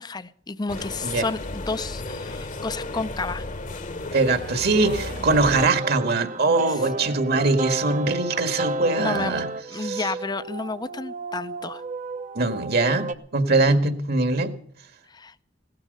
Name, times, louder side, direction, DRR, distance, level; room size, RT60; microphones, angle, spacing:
voice 1, 0.0-3.5 9.0-9.4 9.7-11.8 15.1-15.3, left 3 dB, 20° left, 15 dB, 0.6 m, -31 dB
sound 1, 0.7-5.7, left 2 dB, 40° left, 1.1 m, -34 dB
voice 2, 4.1-9.5 9.8-10.1 12.4-14.5, right 3 dB, 55° right, 9 dB, 1.7 m, -22 dB
sound 2, 4.7-13.1, right 2 dB, 40° right, 0.8 m, -32 dB
17.0 x 13.5 x 5.3 m, 0.64 s
head